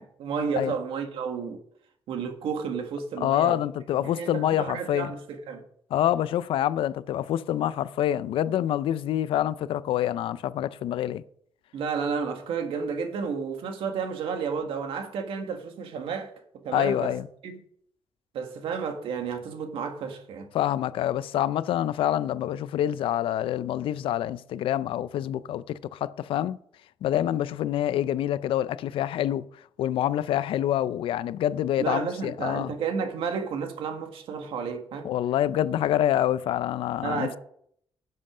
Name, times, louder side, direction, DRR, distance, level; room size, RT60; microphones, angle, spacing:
voice 1, 0.0-1.6 2.1-3.6 4.0-5.6 11.7-16.3 16.6-17.1 17.4-17.5 18.3-20.5 31.8-35.2 37.0-37.4, right 6 dB, 85° right, 1.7 m, -31 dB
voice 2, 3.2-5.1 5.9-11.2 16.7-17.3 20.5-26.6 27.0-29.4 29.8-32.7 35.0-37.4, left 11 dB, 75° left, 0.5 m, -26 dB
11.0 x 7.7 x 5.0 m
cardioid pair, 180°, 9 cm